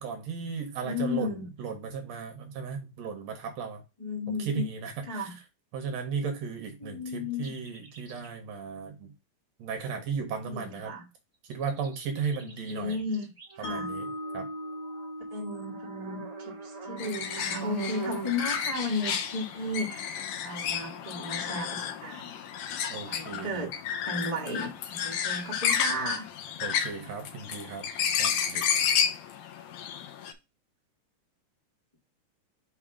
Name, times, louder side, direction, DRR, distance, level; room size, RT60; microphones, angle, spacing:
voice 1, 0.0-1.3 1.6-3.8 4.3-5.3 5.7-9.1 9.6-10.9 11.5-13.0 13.6-14.1 14.3-14.5 22.9-23.7 26.6-27.9 28.2-28.7, right 6 dB, 70° right, 1.8 m, -35 dB
voice 2, 0.8-1.5 4.0-4.7 5.0-5.3 6.8-7.5 10.4-11.0 12.4-13.3 13.5-13.9 15.3-22.4 23.1-23.7 24.0-26.3, left 2 dB, 30° left, 0.7 m, -34 dB
sound 1, 7.4-8.4 11.5-18.4, right 5 dB, 20° right, 0.8 m, -42 dB
Mallet percussion, 13.6-19.8, left 1 dB, 65° left, 2.9 m, -41 dB
sound 2, 17.0-30.3, left 8 dB, 90° left, 2.3 m, -31 dB
5.5 x 3.6 x 4.8 m
omnidirectional pair, 3.6 m